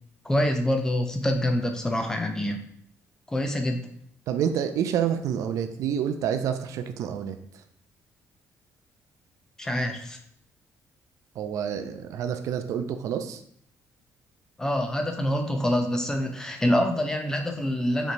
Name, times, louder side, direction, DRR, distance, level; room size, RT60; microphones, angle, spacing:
voice 1, 0.2-2.6 3.3-3.9 9.6-10.2 14.6-18.1, left 1 dB, 10° left, 5 dB, 0.4 m, -26 dB
voice 2, 4.3-7.4 11.4-13.4, right 8 dB, 65° right, 8 dB, 0.4 m, -28 dB
5.1 x 3.0 x 2.6 m, 0.67 s
cardioid pair, 165°, 6 cm